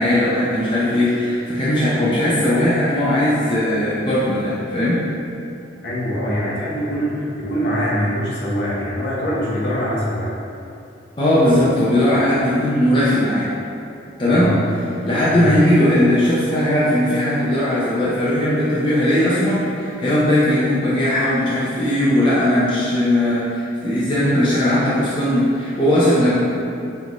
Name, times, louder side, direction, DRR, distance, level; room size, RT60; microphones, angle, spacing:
voice 1, 0.0-5.0 11.2-13.5 14.2-14.6 15.0-26.3, left 1 dB, 25° left, -9 dB, 0.6 m, -18 dB
voice 2, 5.8-10.3 14.3-14.6 15.2-15.5, equal, 60° left, -7 dB, 0.9 m, -23 dB
5.4 x 2.6 x 3.0 m, 2.6 s
head